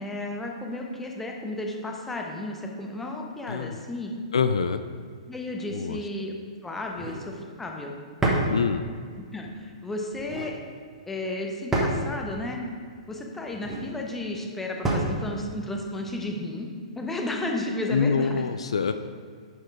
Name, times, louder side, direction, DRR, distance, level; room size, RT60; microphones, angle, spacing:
voice 1, 0.0-4.1 5.3-6.3 6.6-7.9 9.2-10.6 11.1-12.6 13.1-16.7 17.0-18.4, left 1 dB, 5° left, 0 dB, 0.9 m, -33 dB
voice 2, 4.3-4.8 5.7-6.0 8.5-8.8 17.9-18.9, left 5 dB, 65° left, 9 dB, 0.3 m, -25 dB
sound 1, 6.9-7.2 8.2-8.5 10.1-10.5 11.7-12.1 13.5-13.9 14.8-15.2, right 2 dB, 10° right, 1.2 m, -27 dB
10.5 x 4.4 x 4.6 m, 2.1 s
figure-of-eight pair, 115°, 3 cm